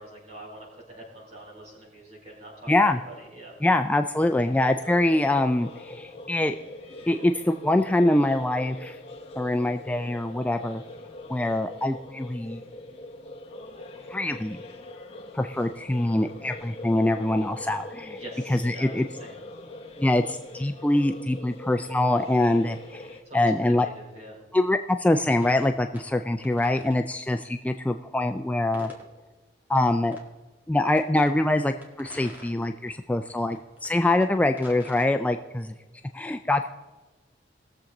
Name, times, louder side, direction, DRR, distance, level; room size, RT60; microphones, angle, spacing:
voice 1, 0.0-3.5 18.2-19.4 23.2-24.4, right 1 dB, 40° right, -4 dB, 4.3 m, -44 dB
voice 2, 2.7-3.0 3.6-6.6 7.1-9.0 9.4-10.8 11.3-12.6 14.1-14.6 15.3-18.2 18.5-19.0 20.0-23.9 24.5-28.9 29.7-30.2 30.7-35.7 36.1-36.7, left 1 dB, 10° left, 6 dB, 0.3 m, -24 dB
sound 1, 4.3-23.2, left 2 dB, 35° left, 1.2 m, -43 dB
sound 2, 25.4-26.1 26.4-27.0 28.7-29.1 30.1-30.2 31.0-31.3 31.8-32.9 33.3-35.0, left 1 dB, 10° right, 2.0 m, -46 dB
19.5 x 7.2 x 3.9 m, 1.2 s
head